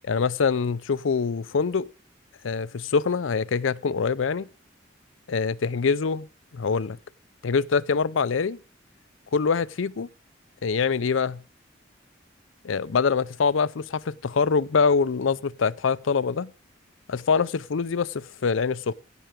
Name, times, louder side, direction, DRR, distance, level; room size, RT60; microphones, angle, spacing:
voice 1, 0.1-1.9 2.4-4.5 5.3-6.3 6.5-7.0 7.4-8.6 9.3-10.1 10.6-11.4 12.6-16.5 17.1-18.9, left 5 dB, 90° left, 0.5 m, -24 dB
16.5 x 7.0 x 5.0 m
head